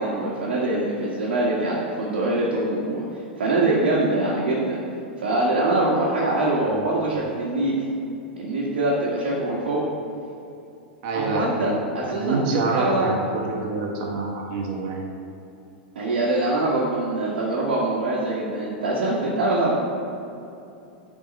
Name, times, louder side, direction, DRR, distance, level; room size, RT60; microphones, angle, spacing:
voice 1, 0.0-3.0 3.4-4.8 5.2-7.8 8.4-9.8 11.1-13.1 15.9-19.8, right 2 dB, 70° right, -6 dB, 1.4 m, -23 dB
voice 2, 11.0-11.8 12.1-15.1, right 3 dB, 50° right, 0 dB, 1.4 m, -26 dB
8.9 x 3.8 x 5.3 m, 2.7 s
hypercardioid pair, 100°, 6 cm